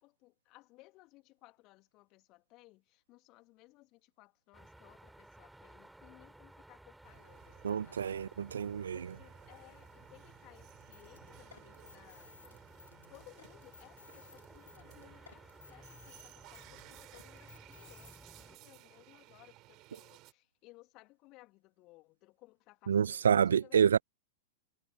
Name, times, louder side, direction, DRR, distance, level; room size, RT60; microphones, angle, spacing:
voice 1, 0.0-8.5 8.9-12.6 13.1-23.9, left 21 dB, 40° left, 2.9 m, -61 dB
sound 1, 4.5-18.6, right 1 dB, 5° right, 7.0 m, -57 dB
sound 2, 7.0-20.3, right 20 dB, 35° right, 7.2 m, -59 dB
voice 2, 7.6-9.1 22.9-24.0, right 7 dB, 65° right, 0.4 m, -28 dB
sound 3, 10.7-18.2, left 6 dB, 70° left, 2.3 m, -59 dB
figure-of-eight pair, 95°, 0 cm